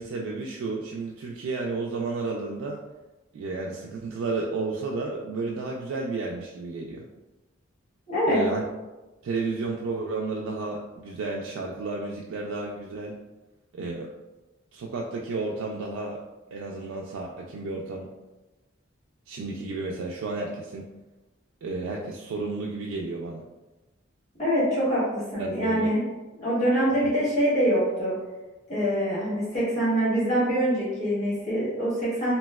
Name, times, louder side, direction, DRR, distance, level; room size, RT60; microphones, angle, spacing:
voice 1, 0.0-2.8 3.3-7.1 8.3-8.7 9.2-13.2 13.7-14.1 14.7-16.2 16.5-18.1 19.3-20.9 21.6-23.4 25.4-25.9 27.0-27.1, right 3 dB, 90° right, -1 dB, 0.3 m, -32 dB
voice 2, 8.1-8.4 24.4-26.0 26.4-28.1 28.7-32.4, equal, 35° left, -9 dB, 1.4 m, -24 dB
3.0 x 2.7 x 2.2 m, 1.1 s
head